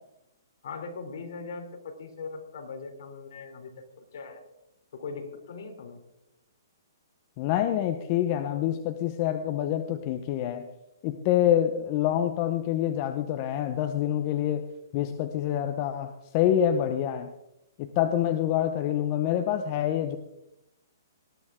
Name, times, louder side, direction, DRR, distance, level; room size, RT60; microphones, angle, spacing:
voice 1, 0.6-3.7 4.0-4.4 4.9-6.0, left 4 dB, 55° left, 4 dB, 3.2 m, -40 dB
voice 2, 7.4-10.7 11.0-14.7 14.9-17.3 17.8-20.2, left 11 dB, 30° left, 7 dB, 0.8 m, -26 dB
19.5 x 12.5 x 3.7 m, 0.87 s
hypercardioid pair, 165°, 2 cm